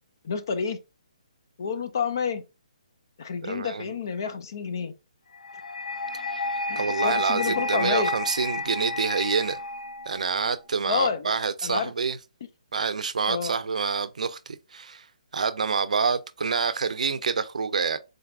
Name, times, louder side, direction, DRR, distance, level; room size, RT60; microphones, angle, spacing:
voice 1, 0.2-0.8 1.6-2.4 3.2-4.9 6.7-8.1 10.8-11.4 11.6-11.9 13.3-13.5, left 6 dB, 30° left, 0.4 m, -29 dB
voice 2, 3.4-3.9 6.3-6.4 6.8-9.6 10.1-12.2 12.7-15.1 15.3-18.0, right 5 dB, 70° right, 0.4 m, -27 dB
sound 1, 5.4-10.5, left 2 dB, 90° left, 0.6 m, -31 dB
3.9 x 2.4 x 3.3 m
hypercardioid pair, 180°, 4 cm